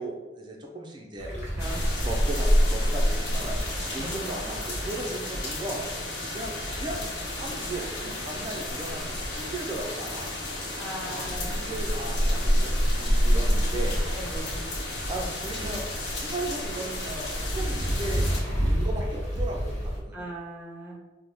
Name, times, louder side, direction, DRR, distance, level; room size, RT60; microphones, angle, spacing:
voice 1, 0.0-1.3 2.0-5.9 6.3-10.3 11.1-14.0 15.1-15.9 16.1-18.2 18.6-20.2, right 2 dB, 25° right, 0 dB, 0.4 m, -36 dB
sound 1, 1.2-20.0, equal, 40° left, 1.2 m, -34 dB
voice 2, 1.3-1.8 4.0-4.1 7.7-8.2 10.8-11.6 14.1-14.5 20.1-21.0, equal, 10° right, -6 dB, 0.9 m, -39 dB
sound 2, 1.6-18.4, equal, 75° left, 0.9 m, -28 dB
4.5 x 2.0 x 3.3 m, 1.2 s
head